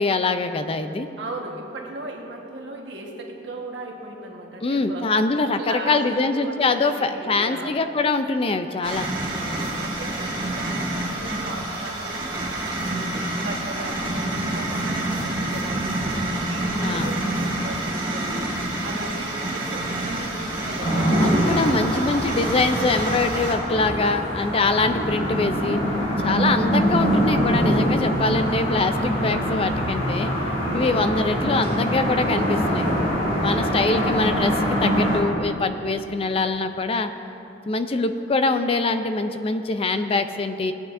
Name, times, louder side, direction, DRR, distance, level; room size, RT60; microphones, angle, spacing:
voice 1, 0.0-1.1 4.6-9.1 16.8-17.1 21.2-25.8 26.2-30.3 30.7-32.9 33.4-34.5 34.8-37.1 37.7-40.7, left 3 dB, 30° left, 9 dB, 0.4 m, -23 dB
voice 2, 1.2-5.1 5.6-7.8 9.3-16.2 16.5-18.5 18.8-22.2 30.2-31.4 33.5-34.2, right 1 dB, 80° right, 0 dB, 1.3 m, -37 dB
sound 1, 8.8-23.5, right 1 dB, 25° right, 1.8 m, -28 dB
sound 2, 20.8-35.2, equal, 60° left, 2.2 m, -24 dB
17.5 x 8.7 x 2.6 m, 2.9 s
head